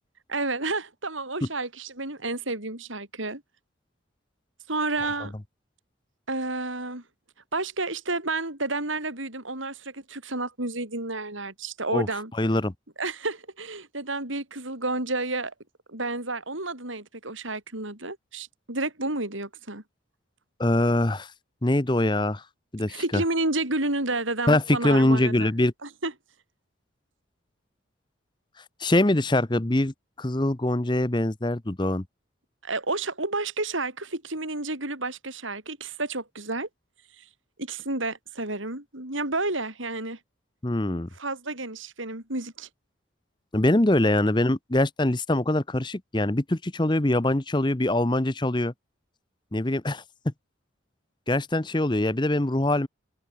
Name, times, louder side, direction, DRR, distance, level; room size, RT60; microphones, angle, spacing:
voice 1, 0.3-3.4 4.7-5.3 6.3-7.0 7.5-12.3 13.0-15.5 15.9-19.8 22.9-25.5 25.8-26.1 32.6-36.7 37.2-37.3 37.6-40.2 41.2-42.7, right 2 dB, 80° right, 6.2 m, -30 dB
voice 2, 12.4-12.7 20.6-21.3 21.6-22.4 22.7-23.2 24.5-25.7 28.8-32.0 40.6-41.1 43.5-48.7 49.5-50.3 51.3-52.9, left 1 dB, 25° left, 0.9 m, -23 dB
open air
head